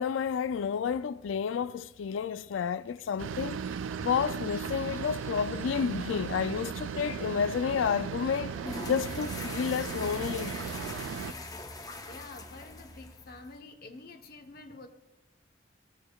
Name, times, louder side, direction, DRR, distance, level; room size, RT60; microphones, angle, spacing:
voice 1, 0.0-3.6 4.0-8.6 8.9-10.6, left 7 dB, 85° left, 0.3 m, -30 dB
sound 1, 0.8-1.0 1.6-1.7 2.7-9.1 10.7-10.8 11.1-11.2, right 1 dB, 10° right, 1.4 m, -56 dB
sound 2, 3.2-11.3, right 7 dB, 90° right, 0.3 m, -37 dB
sound 3, 8.5-13.6, left 2 dB, 20° left, 0.7 m, -41 dB
voice 2, 12.0-14.9, left 3 dB, 55° left, 0.9 m, -48 dB
15.5 x 6.9 x 2.3 m
head